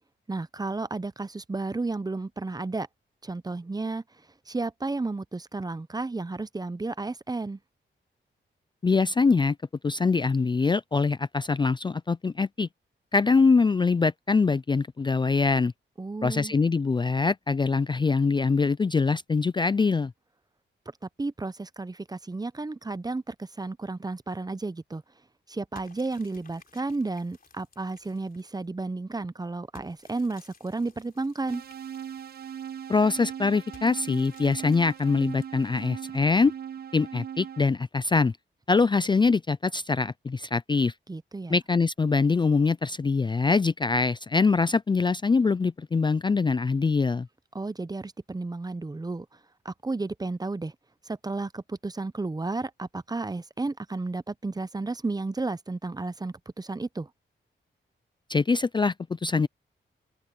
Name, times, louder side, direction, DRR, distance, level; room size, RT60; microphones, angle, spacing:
voice 1, 0.3-2.9 3.2-4.0 4.5-7.6 16.0-16.5 21.2-25.0 25.5-31.6 41.1-41.6 47.5-49.3 49.6-50.7 51.1-57.1, right 3 dB, 20° right, 0.7 m, -32 dB
voice 2, 8.8-9.6 9.8-12.7 13.1-15.7 16.2-20.1 32.9-36.5 36.9-38.3 38.7-40.9 41.5-47.3 58.3-59.5, left 4 dB, 25° left, 0.4 m, -23 dB
sound 1, 25.8-28.7 29.8-32.7 33.7-36.4, left 5 dB, 50° left, 4.0 m, -56 dB
sound 2, 31.5-37.7, right 8 dB, 55° right, 0.4 m, -39 dB
cardioid pair, 90°, 20 cm